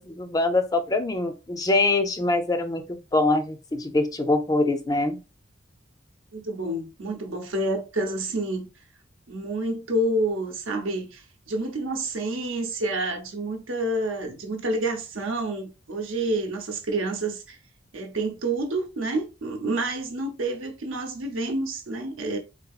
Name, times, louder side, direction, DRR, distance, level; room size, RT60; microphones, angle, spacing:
voice 1, 0.0-5.2, left 2 dB, 20° left, 0.4 m, -24 dB
voice 2, 6.3-8.7 9.3-17.6 17.9-22.4, right 2 dB, 85° right, 0.8 m, -28 dB
3.9 x 2.7 x 2.3 m
head